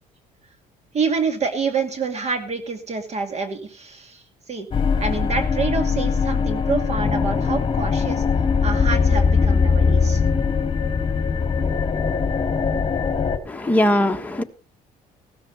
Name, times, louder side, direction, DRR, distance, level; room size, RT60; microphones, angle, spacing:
voice 1, 0.9-4.2 4.5-4.7 5.0-8.2 8.6-10.2, right 4 dB, 40° right, 2.5 m, -27 dB
sound 1, 4.7-13.4, left 5 dB, 30° left, 2.2 m, -21 dB
voice 2, 13.5-14.4, left 1 dB, 10° left, 1.5 m, -20 dB
15.0 x 13.0 x 4.0 m
cardioid pair, 110°, 17 cm